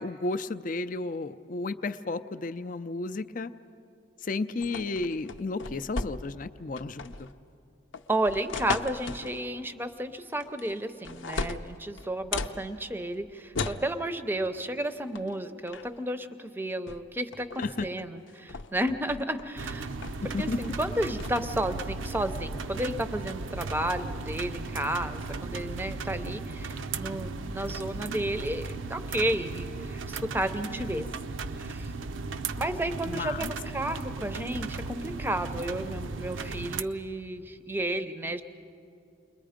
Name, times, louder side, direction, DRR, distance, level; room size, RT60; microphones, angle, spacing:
voice 1, 0.0-3.5 4.2-7.3 17.6-17.9 19.9-20.0 20.2-20.6 33.0-33.5, left 3 dB, 40° left, 10 dB, 0.5 m, -33 dB
sound 1, 4.6-6.4 6.8-7.3 7.9-9.4 10.4-10.8 11.0-12.6 13.5-13.9 15.1-15.3 15.7-16.0 16.9-17.0 17.3-17.9 18.3-19.5 20.0-20.3 20.6-21.3, left 4 dB, 75° left, 0.7 m, -36 dB
voice 2, 8.1-19.9 20.4-31.1 31.6-31.9 32.6-38.4, right 1 dB, 10° right, 10 dB, 0.6 m, -32 dB
sound 2, 19.6-36.8, right 4 dB, 80° right, 0.6 m, -36 dB
29.5 x 21.5 x 5.1 m, 2.6 s
head